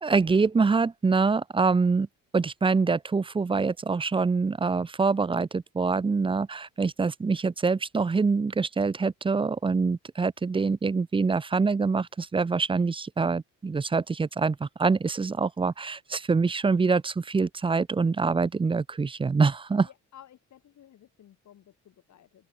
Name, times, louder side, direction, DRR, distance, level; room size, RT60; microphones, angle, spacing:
voice 1, 0.0-2.1 2.3-19.9, right 4 dB, 15° right, 0.5 m, -25 dB
voice 2, 19.8-22.5, left 11 dB, 70° left, 5.3 m, -54 dB
open air
cardioid pair, 90°, 30 cm